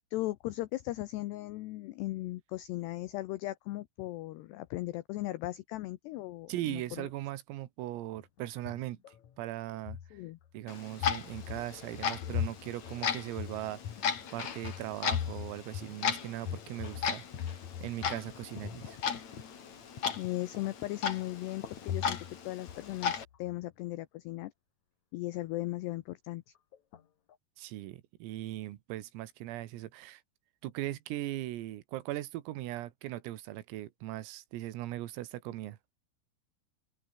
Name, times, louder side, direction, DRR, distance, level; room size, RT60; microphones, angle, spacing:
voice 1, 0.1-7.1 10.1-10.4 20.2-22.2 22.4-24.5 25.1-26.4, left 17 dB, 85° left, 2.4 m, -37 dB
voice 2, 6.5-9.0 9.4-10.2 10.5-14.0 14.3-19.0 27.6-30.2 30.6-35.8, right 15 dB, 85° right, 4.2 m, -39 dB
sound 1, 8.2-9.4 9.7-10.6 11.0-18.2 18.5-19.0 21.6-22.4 22.7-23.6 26.7-27.0 27.3-27.4, left 9 dB, 55° left, 2.1 m, -40 dB
Clock, 10.7-23.2, left 7 dB, 40° left, 3.2 m, -37 dB
omnidirectional pair, 5.9 m